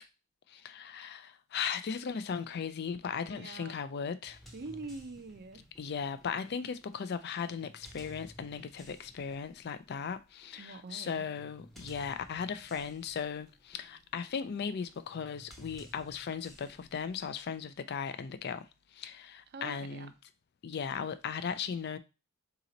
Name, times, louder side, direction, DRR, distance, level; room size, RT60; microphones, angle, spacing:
voice 1, 0.5-4.4 5.8-20.1 20.6-22.0, left 6 dB, 45° left, 0.4 m, -37 dB
voice 2, 3.3-3.7 4.5-5.6 10.6-11.3 19.5-20.1, right 3 dB, 45° right, 0.5 m, -44 dB
sound 1, 4.3-17.4, equal, ahead, 0.7 m, -56 dB
4.0 x 2.9 x 3.8 m
head